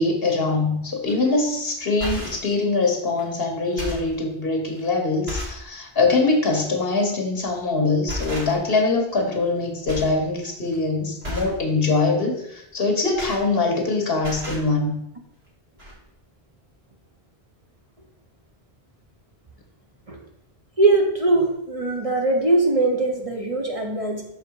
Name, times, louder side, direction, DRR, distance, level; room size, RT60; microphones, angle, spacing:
voice 1, 0.0-15.0, left 3 dB, 70° left, 3 dB, 1.5 m, -23 dB
bucket of ice put down on carpet thud rattly, 1.1-1.3 1.8-2.5 3.2-3.3 3.6-4.2 4.8-4.9 5.3-5.7 6.0-6.2 7.4-7.6 8.1-8.8 9.1-9.6 9.9-10.2 10.5-10.8 11.2-11.6 12.8-13.9 14.1-14.7 15.5-15.6 15.8-15.9, left 1 dB, 75° right, 2.3 m, -33 dB
voice 2, 20.8-24.2, right 2 dB, 35° right, 1 dB, 1.0 m, -21 dB
6.3 x 4.9 x 4.7 m, 0.80 s
omnidirectional pair, 1.0 m